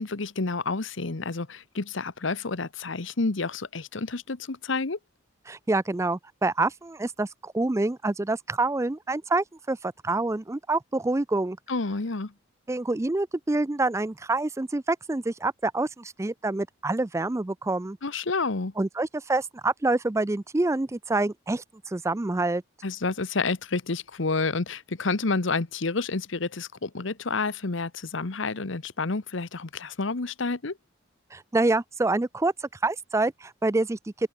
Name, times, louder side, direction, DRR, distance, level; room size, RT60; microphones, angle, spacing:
voice 1, 0.0-5.0 11.7-12.3 18.0-18.7 22.8-30.7, left 3 dB, 70° left, 1.1 m, -29 dB
voice 2, 5.5-11.6 12.7-18.0 18.8-22.6 31.3-34.3, right 2 dB, 15° right, 0.4 m, -27 dB
open air
head